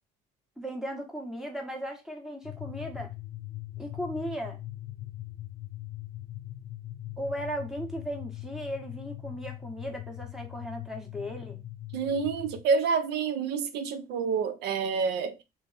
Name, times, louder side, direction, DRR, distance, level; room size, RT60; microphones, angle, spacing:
voice 1, 0.6-3.1 3.8-4.6 7.2-11.6, equal, 5° right, 1.4 m, -36 dB
sound 1, 2.4-12.6, left 15 dB, 70° left, 0.6 m, -41 dB
voice 2, 11.9-15.4, right 5 dB, 85° right, 0.6 m, -28 dB
3.4 x 3.1 x 4.2 m
cardioid pair, 110°, 17 cm